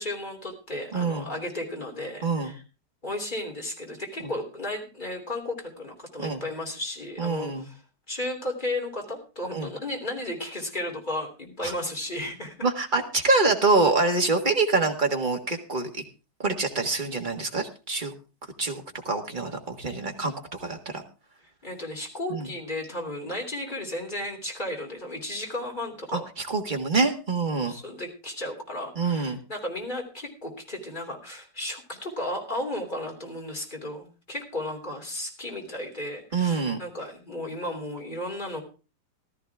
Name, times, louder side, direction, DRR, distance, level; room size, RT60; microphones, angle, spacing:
voice 1, 0.0-2.6 3.0-7.8 8.1-12.7 21.6-26.2 27.7-38.6, left 1 dB, 25° left, 1 dB, 3.3 m, -34 dB
voice 2, 0.9-1.3 2.2-2.5 6.2-6.4 7.2-7.7 9.5-9.7 11.6-11.7 12.6-16.0 16.4-18.1 18.6-21.0 22.3-22.5 26.1-27.7 29.0-29.4 36.3-36.8, right 3 dB, 30° right, 3 dB, 1.8 m, -25 dB
15.0 x 13.0 x 3.6 m, 0.32 s
omnidirectional pair, 1.8 m